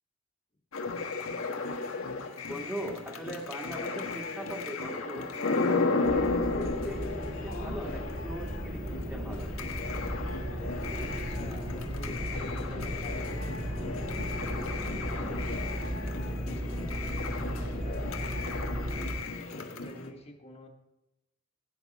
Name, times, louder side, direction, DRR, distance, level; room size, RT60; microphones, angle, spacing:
sound 1, 0.7-20.1, left 3 dB, 85° left, 1.4 m, -34 dB
voice 1, 2.5-9.5, right 1 dB, 10° right, -1 dB, 1.9 m, -40 dB
sound 2, 6.0-19.2, equal, 30° right, 2.2 m, -35 dB
voice 2, 11.1-14.4 14.8-15.5 15.9-18.9 19.3-20.7, left 1 dB, 30° left, 1 dB, 1.6 m, -48 dB
16.0 x 8.9 x 4.2 m, 0.95 s
head